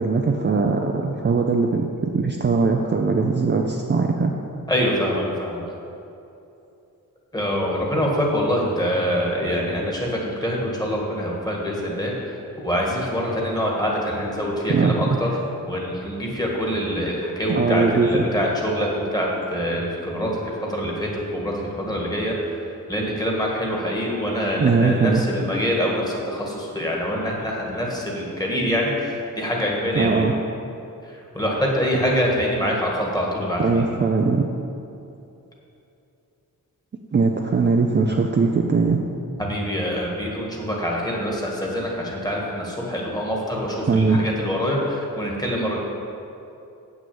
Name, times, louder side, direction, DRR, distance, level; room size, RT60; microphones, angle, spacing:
voice 1, 0.0-1.9 2.1-4.3 14.7-15.2 17.5-18.2 24.6-25.2 29.9-30.4 33.6-34.5 37.1-39.0 43.9-44.2, right 4 dB, 30° right, 1 dB, 0.5 m, -20 dB
voice 2, 4.7-5.6 7.3-12.1 12.6-15.3 15.6-22.4 22.9-30.2 31.3-33.8 39.4-45.8, equal, 10° left, -2 dB, 1.7 m, -25 dB
8.1 x 6.3 x 7.1 m, 2.8 s
wide cardioid pair, 135°, 35 cm